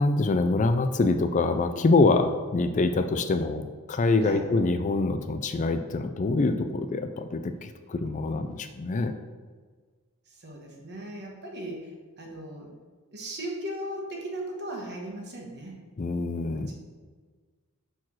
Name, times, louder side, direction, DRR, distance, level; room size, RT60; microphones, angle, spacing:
voice 1, 0.0-9.2 16.0-16.7, left 3 dB, 35° left, 8 dB, 0.4 m, -25 dB
voice 2, 10.3-11.9 12.2-12.7 13.1-15.8 16.5-16.7, right 1 dB, 50° right, 0 dB, 1.4 m, -37 dB
5.8 x 4.6 x 6.1 m, 1.5 s
head